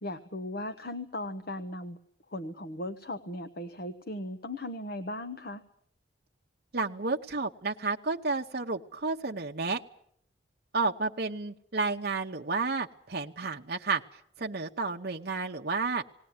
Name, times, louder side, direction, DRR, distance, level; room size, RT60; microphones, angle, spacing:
voice 1, 0.0-2.0 2.3-5.6, left 1 dB, 50° left, 9 dB, 1.0 m, -37 dB
voice 2, 6.7-9.8 10.7-14.0 14.4-16.0, right 4 dB, 50° right, 1 dB, 0.8 m, -31 dB
19.0 x 18.5 x 9.6 m, 0.70 s
head